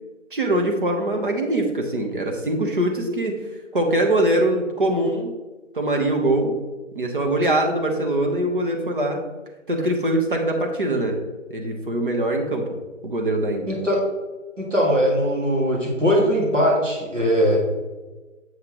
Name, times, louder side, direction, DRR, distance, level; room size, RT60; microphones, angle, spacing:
voice 1, 0.3-3.3 3.7-5.3 5.7-6.5 6.9-9.2 9.7-11.2 11.5-12.7 13.0-13.7, right 1 dB, 40° right, 2 dB, 1.1 m, -22 dB
voice 2, 13.7-14.0 14.6-17.6, equal, 75° right, -3 dB, 2.2 m, -20 dB
7.4 x 5.9 x 3.0 m, 1.2 s
figure-of-eight pair, 165°, 38 cm